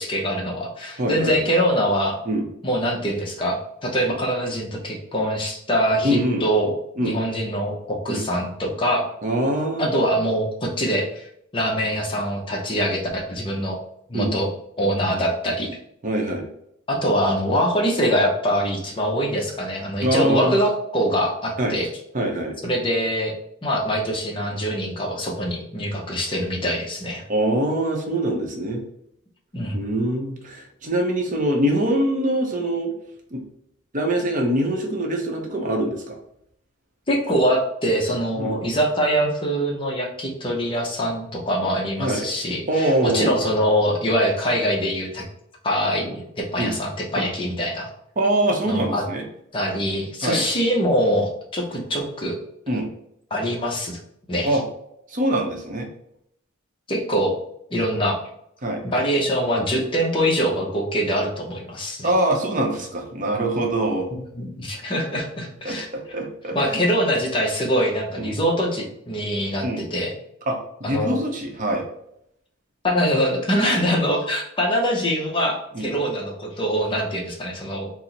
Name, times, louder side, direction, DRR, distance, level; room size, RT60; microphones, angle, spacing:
voice 1, 0.0-2.2 2.6-6.8 7.0-9.1 9.8-11.3 11.5-13.8 14.1-14.5 14.8-15.7 16.9-21.9 22.6-23.3 23.6-27.2 29.5-29.8 37.1-45.3 45.6-47.9 48.7-49.0 49.5-52.4 53.3-54.0 54.3-54.6 56.9-57.4 57.7-58.2 58.8-62.1 64.3-65.9 66.5-70.1 70.8-71.2 72.8-77.9, equal, 25° left, 0 dB, 0.6 m, -23 dB
voice 2, 1.0-1.4 2.3-2.5 6.0-6.4 7.0-7.2 8.1-8.2 9.2-9.9 14.1-14.3 16.0-16.4 20.0-20.6 21.6-21.8 22.1-22.5 27.3-28.8 29.7-32.9 33.3-33.4 33.9-36.2 38.4-38.6 42.0-42.3 42.7-43.4 46.6-46.7 48.2-49.2 50.2-50.4 52.7-52.9 54.4-54.6 55.1-55.9 58.6-58.8 62.0-64.1 65.6-66.8 68.2-68.3 69.6-69.8 70.5-71.8 75.7-75.9, right 1 dB, 40° right, 2 dB, 0.6 m, -23 dB
4.3 x 2.0 x 3.8 m, 0.74 s
head